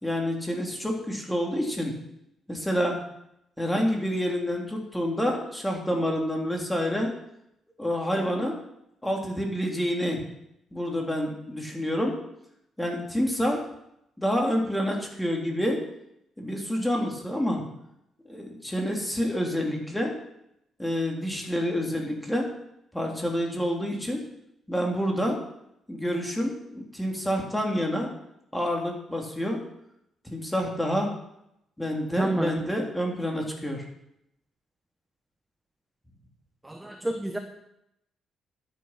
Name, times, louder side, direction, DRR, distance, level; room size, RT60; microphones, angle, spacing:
voice 1, 0.0-1.9 2.5-3.0 3.6-7.1 7.8-8.5 9.0-10.2 10.7-12.1 12.8-13.6 14.2-15.8 16.4-17.6 18.3-20.1 20.8-22.5 22.9-24.2 24.7-25.4 25.9-28.1 28.5-29.6 30.3-31.1 31.8-33.8, equal, 5° left, 0 dB, 3.5 m, -28 dB
voice 2, 32.2-32.5 36.6-37.4, right 1 dB, 10° right, 5 dB, 1.3 m, -29 dB
12.5 x 9.9 x 6.1 m, 0.80 s
cardioid pair, 90°, 0 cm